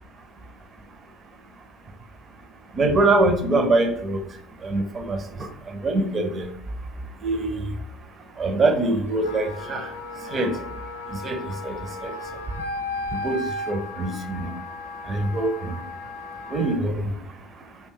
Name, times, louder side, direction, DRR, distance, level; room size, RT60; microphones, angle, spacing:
voice 1, 2.7-4.2 4.6-6.5 7.2-7.7 8.4-9.9 10.3-10.5 11.1-11.8 12.0-12.1 13.1-14.5 15.1-15.8 16.5-17.2, right 2 dB, 30° right, 6 dB, 0.5 m, -24 dB
Wind instrument woodwind instrument, 9.1-16.8, left 2 dB, 85° left, 0.4 m, -35 dB
2.5 x 2.2 x 3.6 m, 0.72 s
hypercardioid pair, 70°, 0 cm